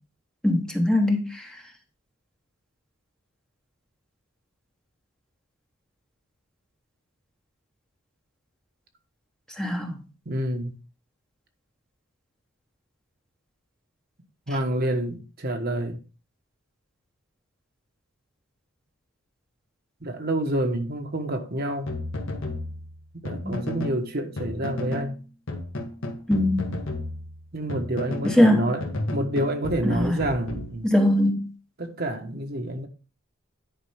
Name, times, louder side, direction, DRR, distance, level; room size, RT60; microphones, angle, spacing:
voice 1, 0.4-1.5 9.6-10.0 23.4-23.6 26.3-26.8 28.2-28.7 29.8-30.3 30.8-31.5, left 1 dB, 5° left, 1.0 m, -21 dB
voice 2, 10.3-10.7 14.5-16.0 20.0-21.9 23.2-25.2 27.5-30.9 31.8-32.9, right 1 dB, 45° right, 1.2 m, -28 dB
sound 1, 21.9-24.0 24.4-25.1 25.5-28.5 28.8-31.2, left 1 dB, 60° left, 1.6 m, -33 dB
10.5 x 5.1 x 3.4 m
head